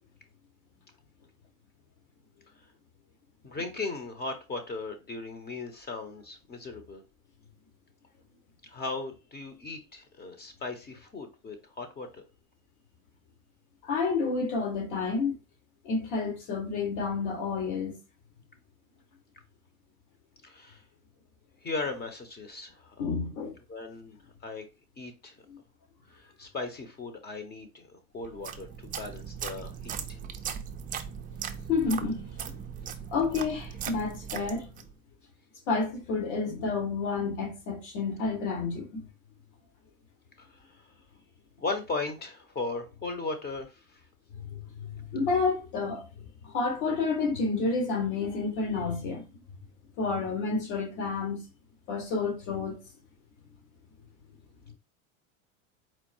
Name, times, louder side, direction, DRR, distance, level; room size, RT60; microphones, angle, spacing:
voice 1, 3.4-7.0 8.7-12.1 20.4-20.8 21.6-23.2 23.7-24.2 24.4-24.6 25.0-25.3 26.4-30.2 40.4-40.5 41.6-43.7, left 3 dB, 25° left, 1.1 m, -37 dB
voice 2, 13.8-15.3 15.8-18.0 23.0-23.5 25.5-25.6 31.7-32.2 33.1-34.7 35.7-39.0 44.5-44.6 45.1-46.1 46.4-49.2 50.0-51.4 51.9-52.8, left 4 dB, 60° left, 2.2 m, -29 dB
sound 1, 28.2-34.9, right 8 dB, 20° right, 0.4 m, -39 dB
4.4 x 2.2 x 4.5 m
hypercardioid pair, 105°, 40 cm